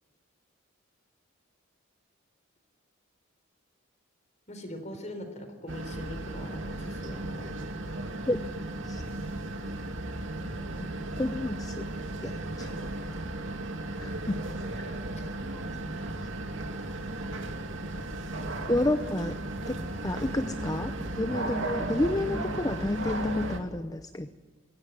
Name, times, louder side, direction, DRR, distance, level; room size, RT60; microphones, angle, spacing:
voice 1, 4.5-7.7 21.5-21.6, equal, 35° left, 7 dB, 3.9 m, -42 dB
sound 1, 5.7-23.6, right 2 dB, 60° right, 2.5 m, -35 dB
voice 2, 11.2-11.9 12.2-12.9 14.0-14.4 14.8-15.0 18.7-19.4 19.7-19.8 20.0-24.3, left 1 dB, 15° left, 10 dB, 0.6 m, -30 dB
25.0 x 17.0 x 9.4 m, 1.4 s
head